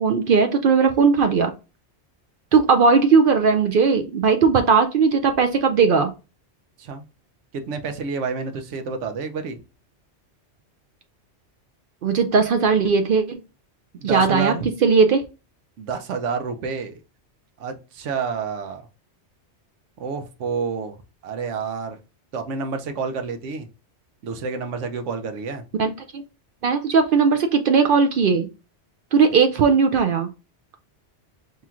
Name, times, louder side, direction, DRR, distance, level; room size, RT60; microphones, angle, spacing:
voice 1, 0.0-1.5 2.5-6.1 12.0-13.4 14.0-14.5 14.8-15.2 25.8-26.2 26.6-28.5 29.1-30.3, right 5 dB, 60° right, 0.6 m, -18 dB
voice 2, 7.5-9.6 13.9-14.7 15.8-17.0 17.6-18.8 20.0-21.0 21.2-22.0 22.3-23.7 24.2-25.6, right 5 dB, 90° right, 1.0 m, -29 dB
5.6 x 2.9 x 2.4 m
omnidirectional pair, 1.2 m